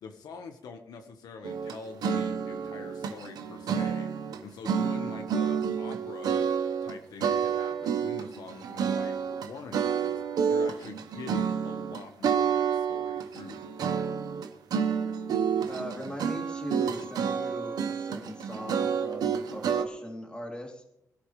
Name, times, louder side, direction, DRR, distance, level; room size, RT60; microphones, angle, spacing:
voice 1, 0.0-13.6, left 5 dB, 90° left, 6 dB, 1.3 m, -45 dB
sound 1, 1.4-4.4 4.6-6.9 7.2-19.9, right 7 dB, 85° right, 1.1 m, -29 dB
voice 2, 15.7-20.9, equal, 15° left, 1 dB, 2.9 m, -40 dB
21.0 x 12.0 x 3.3 m, 0.76 s
wide cardioid pair, 130°, 7 cm